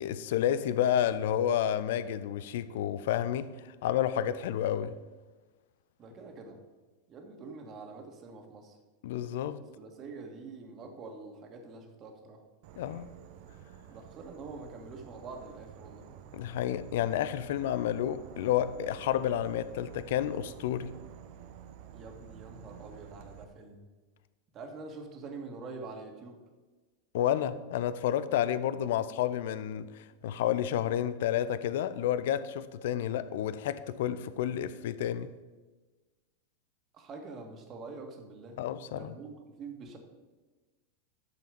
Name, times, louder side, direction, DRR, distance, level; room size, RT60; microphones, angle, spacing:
voice 1, 0.0-3.5 3.8-5.0 9.0-9.6 12.8-13.1 16.3-20.9 27.1-35.3 38.6-39.1, left 10 dB, 60° left, 0.6 m, -30 dB
voice 2, 6.0-6.6 7.1-8.8 9.8-12.4 13.9-16.1 21.9-23.9 24.5-26.4 36.9-38.7 38.9-40.0, right 3 dB, 35° right, 2.0 m, -45 dB
Insect / Frog, 12.6-23.4, right 10 dB, 50° right, 0.8 m, -50 dB
11.0 x 6.9 x 5.2 m
figure-of-eight pair, 90°, 0 cm